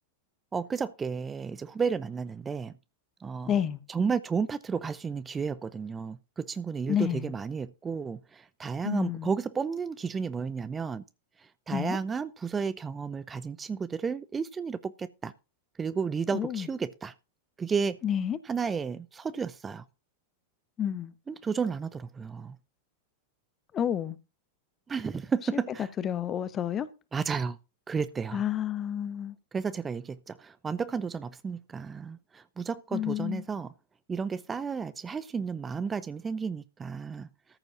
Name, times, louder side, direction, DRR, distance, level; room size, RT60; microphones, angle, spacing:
voice 1, 0.5-2.7 3.2-3.5 3.9-11.0 11.7-15.3 15.8-17.1 17.6-18.0 18.5-19.8 21.3-22.6 24.9-25.9 27.1-27.6 27.9-28.4 29.5-33.7 34.1-37.3, right 5 dB, 15° right, 0.6 m, -32 dB
voice 2, 3.5-3.8 6.9-7.3 8.8-9.3 11.7-12.0 16.3-16.7 18.0-18.4 20.8-21.1 23.7-24.2 26.0-26.9 28.3-29.4 32.9-33.4, left 9 dB, 25° left, 1.1 m, -29 dB
14.0 x 5.1 x 6.0 m
figure-of-eight pair, 90°, 0 cm